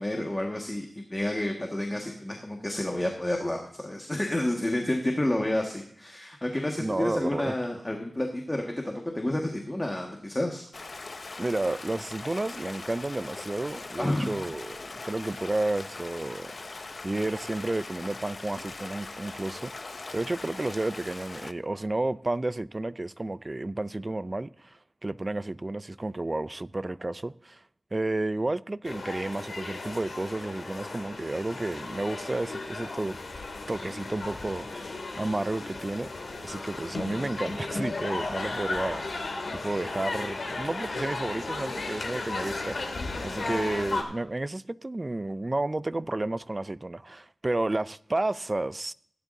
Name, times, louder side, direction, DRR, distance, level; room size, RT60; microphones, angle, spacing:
voice 1, 0.0-10.6 14.0-14.3, left 1 dB, 20° left, 1.7 m, -30 dB
voice 2, 6.8-7.6 11.4-16.5 17.0-27.6 27.9-33.2 33.7-36.1 36.4-48.9, right 2 dB, 30° right, 0.4 m, -32 dB
Stream, 10.7-21.5, left 3 dB, 50° left, 0.5 m, -41 dB
sound 1, 28.8-44.0, left 3 dB, 75° left, 2.5 m, -35 dB
16.5 x 11.0 x 2.7 m
wide cardioid pair, 80°, 0 cm